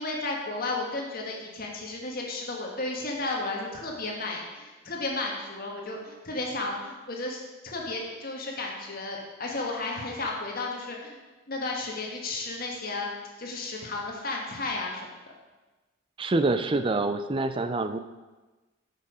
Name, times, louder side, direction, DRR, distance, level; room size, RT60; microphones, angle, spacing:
voice 1, 0.0-11.2 11.5-13.1 13.4-15.1, left 2 dB, 50° left, -1 dB, 1.6 m, -33 dB
voice 2, 16.2-18.0, right 2 dB, 25° right, 9 dB, 0.4 m, -26 dB
8.7 x 6.9 x 5.0 m, 1.2 s
head